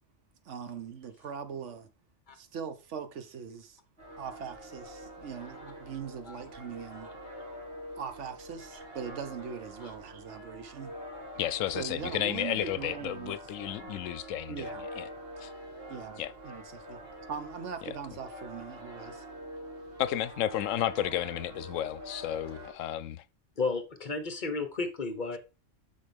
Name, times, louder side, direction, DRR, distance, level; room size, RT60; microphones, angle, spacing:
voice 1, 0.4-1.9 2.3-3.8 4.2-7.1 8.0-10.9 11.7-13.4 14.5-14.9 15.9-19.2, right 7 dB, 70° right, 1.2 m, -41 dB
sound 1, 4.0-22.7, equal, 50° right, 2.5 m, -45 dB
voice 2, 11.4-14.7 15.0-15.1 15.4-15.5 16.2-16.3 20.0-23.2, left 12 dB, 85° left, 1.0 m, -32 dB
voice 3, 23.6-25.4, left 3 dB, 40° left, 1.2 m, -33 dB
6.5 x 6.1 x 3.5 m
omnidirectional pair, 1.3 m